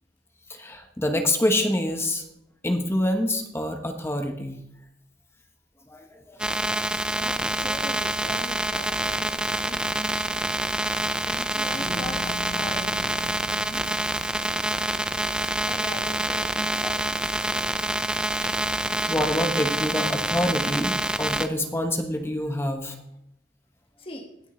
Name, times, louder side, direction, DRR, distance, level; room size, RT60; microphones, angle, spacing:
voice 1, 0.5-2.2 2.6-4.6 5.9-6.6 16.7-17.0 18.2-23.0, left 1 dB, 15° left, 5 dB, 1.1 m, -27 dB
sound 1, 6.4-21.5, right 1 dB, 5° right, 0.4 m, -27 dB
voice 2, 7.2-10.3 10.8-13.1 13.4-14.0 15.7-17.4 24.0-24.3, left 1 dB, 30° left, 3 dB, 1.7 m, -40 dB
sound 2, 11.7-16.6, left 2 dB, 55° left, 3.3 m, -43 dB
18.0 x 6.4 x 3.3 m, 0.79 s
head